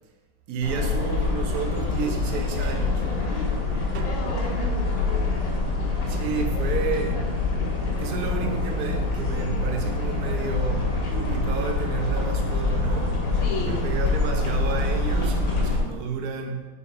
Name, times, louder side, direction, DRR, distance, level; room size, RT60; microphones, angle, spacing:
voice 1, 0.5-3.0 6.1-7.3 8.0-13.2 13.7-16.7, right 6 dB, 60° right, 3 dB, 1.0 m, -31 dB
sound 1, 0.6-15.8, left 3 dB, 65° left, 2.0 m, -25 dB
Tap, 1.5-2.5 2.9-7.7 8.3-9.3 9.9-10.8 11.3-12.1 13.2-13.3 13.6-14.4 14.7-14.8, right 8 dB, 90° right, 1.5 m, -43 dB
voice 2, 4.1-5.5 13.3-14.0, left 3 dB, 85° left, 2 dB, 1.7 m, -36 dB
4.9 x 4.5 x 5.0 m, 1.3 s
omnidirectional pair, 2.3 m